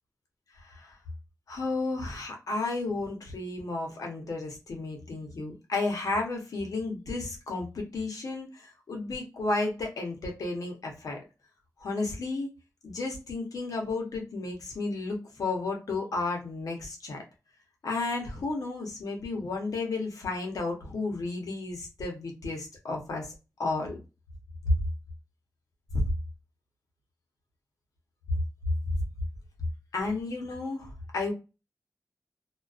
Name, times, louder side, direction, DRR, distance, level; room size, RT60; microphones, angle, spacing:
voice 1, 0.6-1.0 1.5-11.2 11.8-12.5 12.8-17.2 17.8-23.3 23.6-24.0 29.9-31.3, left 3 dB, 75° left, 1 dB, 0.8 m, -33 dB
2.3 x 2.2 x 2.4 m, 0.28 s
wide cardioid pair, 170°, 6 cm